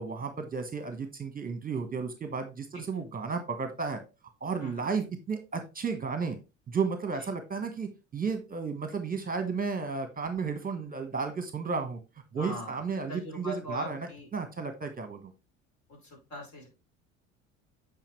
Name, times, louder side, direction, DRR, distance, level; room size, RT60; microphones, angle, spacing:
voice 1, 0.0-4.0 4.4-6.4 6.7-12.0 12.3-14.0 14.3-15.3, right 5 dB, 20° right, 7 dB, 1.3 m, -33 dB
voice 2, 12.4-12.8 13.1-14.3 15.9-16.7, equal, 45° left, -1 dB, 4.7 m, -41 dB
9.0 x 5.1 x 3.1 m, 0.28 s
figure-of-eight pair, 65°, 39 cm